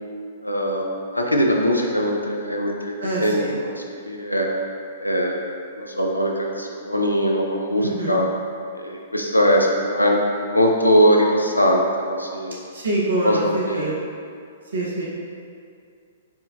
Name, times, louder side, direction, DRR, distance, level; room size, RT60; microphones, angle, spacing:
voice 1, 0.4-4.5 5.0-8.3 8.7-10.2 10.5-12.6 13.2-13.9 14.8-14.9, equal, 90° left, 0 dB, 0.3 m, -21 dB
voice 2, 3.0-3.5 7.8-8.2 12.7-13.9 14.7-15.1, right 2 dB, 65° right, -4 dB, 0.5 m, -25 dB
4.3 x 2.1 x 2.3 m, 2.3 s
figure-of-eight pair, 115°, 0 cm